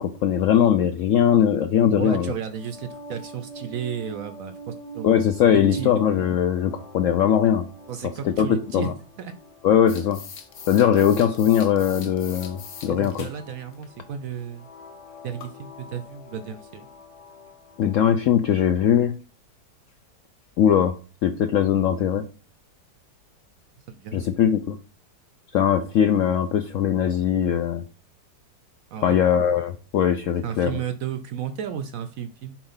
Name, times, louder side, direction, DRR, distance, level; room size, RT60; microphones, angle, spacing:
voice 1, 0.0-2.3 5.0-7.7 8.2-8.9 9.6-10.2 10.7-13.3 17.8-19.1 20.6-20.9 21.2-22.3 24.1-24.8 25.5-27.8 29.0-30.7, left 9 dB, 75° left, 8 dB, 0.7 m, -20 dB
voice 2, 2.0-5.1 5.7-5.9 7.9-9.3 12.9-14.7 15.2-16.9 23.9-24.3 28.9-29.2 30.4-32.6, right 8 dB, 70° right, 9 dB, 0.8 m, -33 dB
sound 1, 2.3-18.3, equal, 30° left, 0.6 m, -45 dB
sound 2, 9.9-13.4 13.7-13.8 15.4-15.6 16.7-16.8 19.9-20.0 20.2-20.3 20.9-21.0 21.5-21.6 22.1-22.2, left 7 dB, 55° left, 1.0 m, -42 dB
7.1 x 2.5 x 5.5 m, 0.36 s
omnidirectional pair, 1.8 m